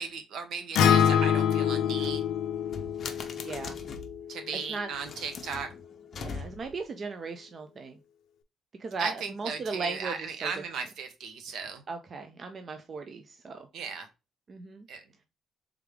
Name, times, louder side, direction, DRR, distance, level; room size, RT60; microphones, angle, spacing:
voice 1, 0.0-2.3 4.3-5.7 9.0-11.8 13.7-14.1 14.9-15.2, right 5 dB, 65° right, 7 dB, 0.8 m, -36 dB
Acoustic guitar, 0.7-5.0, left 8 dB, 90° left, 0.4 m, -26 dB
sound 1, 1.8-4.2 4.9-6.8, left 4 dB, 40° left, 0.6 m, -42 dB
voice 2, 3.3-3.8 4.7-4.9 6.1-8.0 8.8-10.5 11.9-13.7 14.5-14.9, right 4 dB, 30° right, 6 dB, 0.4 m, -37 dB
3.5 x 3.4 x 3.3 m, 0.27 s
cardioid pair, 165°, 0 cm